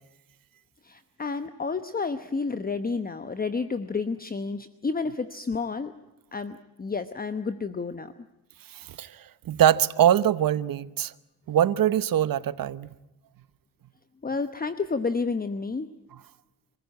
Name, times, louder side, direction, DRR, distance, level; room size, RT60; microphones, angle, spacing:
voice 1, 0.8-5.9 6.3-8.1 14.2-15.9, left 4 dB, 20° left, 1.0 m, -30 dB
voice 2, 8.7-11.1 11.5-12.9, right 11 dB, 60° right, 1.0 m, -23 dB
27.0 x 15.5 x 9.5 m
cardioid pair, 80°, 39 cm